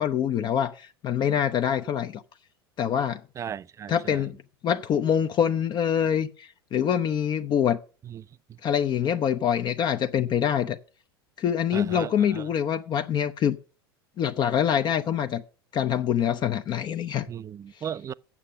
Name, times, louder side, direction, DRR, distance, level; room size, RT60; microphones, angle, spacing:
voice 1, 0.0-2.2 2.8-3.2 3.9-4.4 4.6-7.8 8.6-10.8 11.4-13.6 14.2-15.4 15.7-17.3, left 9 dB, 35° left, 0.6 m, -25 dB
voice 2, 3.4-4.2 8.1-8.2 11.7-12.4 17.3-18.1, right 9 dB, 25° right, 0.4 m, -36 dB
8.5 x 7.3 x 6.7 m
figure-of-eight pair, 85°, 13 cm